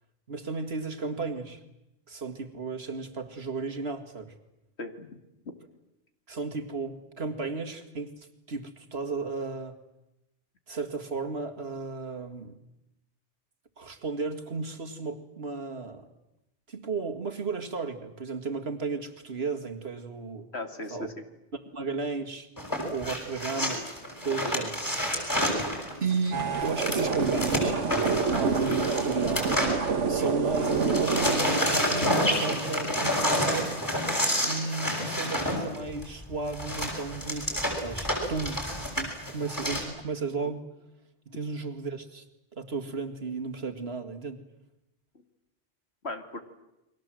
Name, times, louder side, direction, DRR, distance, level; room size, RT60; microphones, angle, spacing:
voice 1, 0.3-1.6 2.1-4.3 6.3-8.1 8.5-9.8 10.7-12.6 13.8-16.1 16.7-20.5 20.9-21.1 21.7-22.5 22.9-23.8 24.2-24.8 26.0-27.8 28.3-29.5 30.1-33.8 34.4-38.6 39.0-40.6 41.3-42.2 42.5-44.4, right 4 dB, 60° right, 4 dB, 2.3 m, -34 dB
voice 2, 4.8-5.2 20.5-21.3 46.0-46.4, left 2 dB, 60° left, 6 dB, 2.5 m, -37 dB
sound 1, 22.6-30.3 30.5-39.8, equal, 15° left, 6.9 m, -29 dB
sound 2, 26.3-31.4, right 5 dB, 75° right, 1.7 m, -27 dB
29.5 x 23.5 x 7.7 m, 0.91 s
omnidirectional pair, 1.2 m